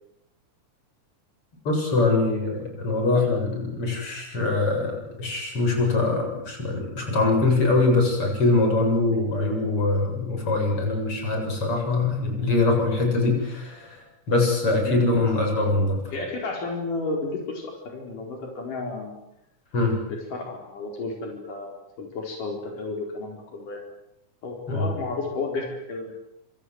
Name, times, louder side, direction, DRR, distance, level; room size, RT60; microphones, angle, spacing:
voice 1, 1.6-16.0 19.7-20.0 24.7-24.9, left 3 dB, 40° left, 2 dB, 8.6 m, -23 dB
voice 2, 16.1-19.2 20.0-23.9 24.4-26.1, left 3 dB, 80° left, 1 dB, 6.0 m, -32 dB
28.0 x 26.5 x 8.0 m, 0.80 s
omnidirectional pair, 3.6 m